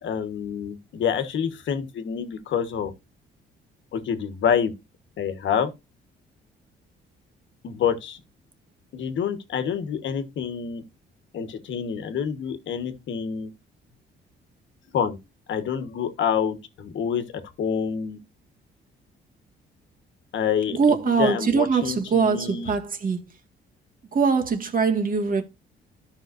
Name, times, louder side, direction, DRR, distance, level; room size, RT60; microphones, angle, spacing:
voice 1, 0.0-2.9 3.9-4.7 5.2-5.7 7.6-8.2 8.9-10.8 11.3-13.5 14.9-15.2 15.5-18.2 20.3-20.8 21.0-22.7, left 7 dB, 70° left, 1.4 m, -27 dB
voice 2, 20.7-23.3 24.1-25.4, right 5 dB, 45° right, 1.9 m, -22 dB
13.0 x 5.5 x 2.6 m
cardioid pair, 90°, 20 cm